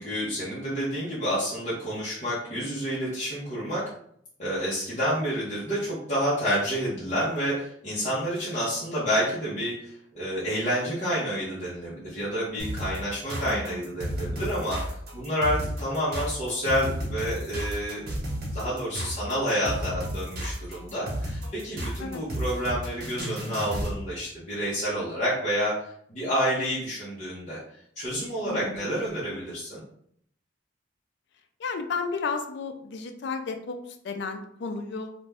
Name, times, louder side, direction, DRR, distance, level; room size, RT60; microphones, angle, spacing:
voice 1, 0.0-3.8 4.4-14.8 15.1-18.0 18.5-25.7 26.1-27.6 28.0-29.8, equal, 40° left, -9 dB, 0.8 m, -29 dB
sound 1, 12.6-24.0, equal, 55° right, 0.9 m, -32 dB
voice 2, 13.4-13.9 22.0-22.2 28.4-28.9 31.6-35.1, left 4 dB, 65° left, 7 dB, 0.4 m, -33 dB
2.5 x 2.1 x 3.3 m, 0.67 s
head